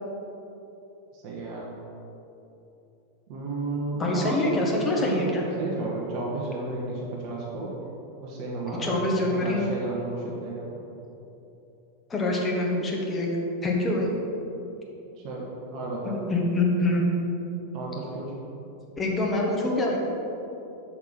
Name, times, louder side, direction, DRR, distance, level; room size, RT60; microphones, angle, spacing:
voice 1, 1.1-1.7 3.3-4.5 5.0-5.2 5.6-7.7 8.2-10.9 15.2-16.2 17.7-18.3, right 2 dB, 40° right, -4 dB, 1.2 m, -33 dB
voice 2, 3.9-5.4 8.8-9.7 12.1-13.3 13.6-14.1 16.0-17.0 19.0-20.0, left 2 dB, 20° left, -2 dB, 1.3 m, -25 dB
6.0 x 5.7 x 5.9 m, 3.0 s
figure-of-eight pair, 90°, 0 cm